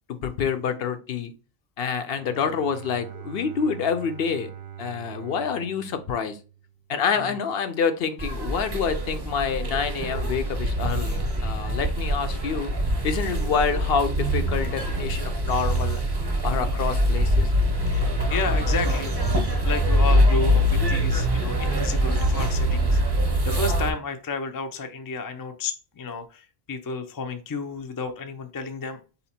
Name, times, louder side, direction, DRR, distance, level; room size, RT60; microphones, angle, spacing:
voice 1, 0.2-1.3 1.8-4.5 4.8-6.4 6.9-12.7 13.0-16.0 16.4-17.5, left 6 dB, 70° left, 9 dB, 0.8 m, -27 dB
Bowed string instrument, 2.0-7.0, right 9 dB, 60° right, 0.7 m, -42 dB
sound 1, 8.2-23.9, equal, 25° right, 0.8 m, -24 dB
voice 2, 17.9-23.0 23.4-29.0, left 4 dB, 35° left, 8 dB, 0.3 m, -32 dB
4.0 x 2.8 x 4.2 m, 0.34 s
omnidirectional pair, 1.0 m